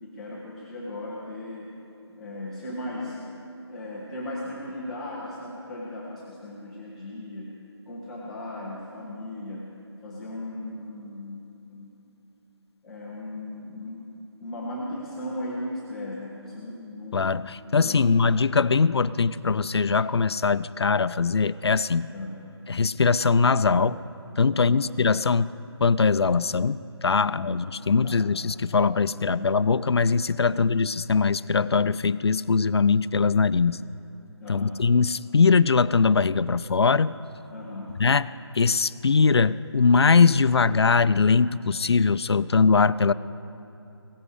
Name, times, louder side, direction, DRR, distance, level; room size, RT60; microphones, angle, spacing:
voice 1, 0.0-1.7 2.1-3.2 3.7-7.6 7.9-9.7 10.0-11.4 11.7-11.9 12.8-14.1 14.4-17.5 17.8-18.4 22.1-22.4 24.5-24.9 27.1-27.6 28.0-28.3 29.1-29.6 30.5-30.9 34.4-34.9 37.5-38.0, left 1 dB, ahead, -9 dB, 0.4 m, -37 dB
voice 2, 17.1-17.4 17.7-22.1 22.7-24.0 24.4-25.5 25.8-26.8 27.0-33.8 34.5-37.1 38.0-38.3 38.6-43.1, left 5 dB, 65° left, 16 dB, 0.5 m, -21 dB
17.5 x 14.5 x 4.9 m, 2.8 s
figure-of-eight pair, 160°, 15 cm